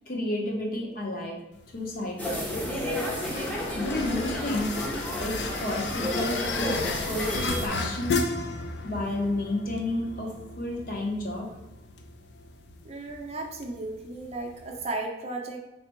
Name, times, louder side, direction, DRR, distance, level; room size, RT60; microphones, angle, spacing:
voice 1, 0.1-1.4 1.7-2.6 3.8-4.8 5.2-6.8 7.1-8.2 8.8-11.5, left 1 dB, 50° left, 1 dB, 0.7 m, -31 dB
sound 1, 1.5-14.9, left 4 dB, 65° left, 0.4 m, -35 dB
sound 2, 2.2-7.7, left 1 dB, 10° left, 0.6 m, -31 dB
voice 2, 12.8-15.6, right 2 dB, 35° right, 1 dB, 0.5 m, -35 dB
4.1 x 3.3 x 3.0 m, 0.96 s
head